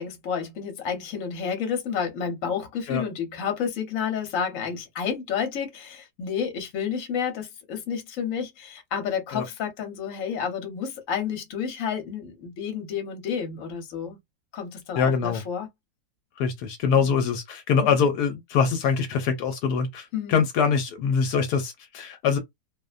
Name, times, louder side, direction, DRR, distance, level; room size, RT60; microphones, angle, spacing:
voice 1, 0.0-14.2 14.5-15.7 17.8-18.0 20.1-20.4, left 7 dB, 60° left, 1.1 m, -30 dB
voice 2, 14.9-15.4 16.4-22.4, left 6 dB, 80° left, 1.2 m, -24 dB
2.8 x 2.1 x 2.4 m
omnidirectional pair, 1.7 m